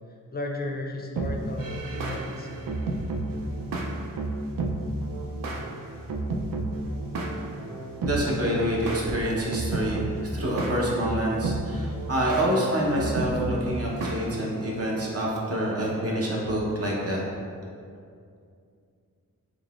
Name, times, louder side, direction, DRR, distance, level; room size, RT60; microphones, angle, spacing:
voice 1, 0.3-2.5, left 2 dB, 30° left, 1 dB, 0.4 m, -34 dB
sound 1, 1.2-14.9, right 2 dB, 70° right, 0.5 m, -31 dB
voice 2, 8.0-17.2, equal, 45° right, -3 dB, 0.8 m, -27 dB
3.8 x 3.6 x 2.4 m, 2.3 s
wide cardioid pair, 75°, 35 cm